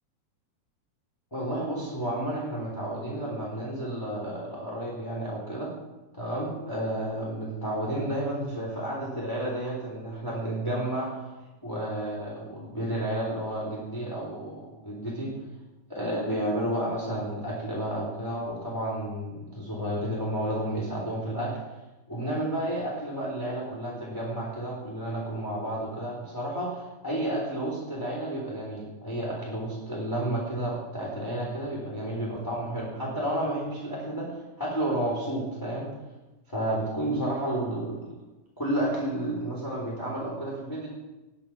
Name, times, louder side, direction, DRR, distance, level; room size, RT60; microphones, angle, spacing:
voice 1, 1.3-5.7 6.1-11.1 11.6-15.3 15.9-21.5 22.1-35.9 36.5-38.2 38.6-40.9, right 1 dB, 5° left, -5 dB, 3.3 m, -31 dB
20.0 x 8.8 x 6.2 m, 1.1 s
omnidirectional pair, 4.4 m